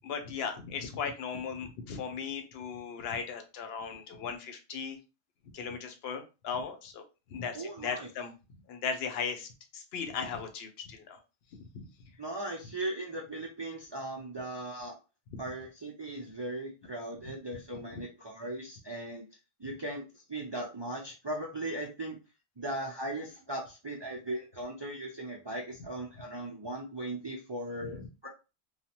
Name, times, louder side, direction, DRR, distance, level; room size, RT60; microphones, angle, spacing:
voice 1, 0.0-5.0 5.5-7.0 7.3-8.4 8.7-11.2 11.6-11.9 15.3-15.4 17.9-18.0 27.8-27.9, left 6 dB, 65° left, 6 dB, 0.8 m, -37 dB
voice 2, 7.5-8.1 12.2-14.9 15.4-19.3 19.6-22.2 22.6-28.3, right 1 dB, 45° right, -2 dB, 0.3 m, -38 dB
3.1 x 2.0 x 2.8 m, 0.29 s
omnidirectional pair, 1.2 m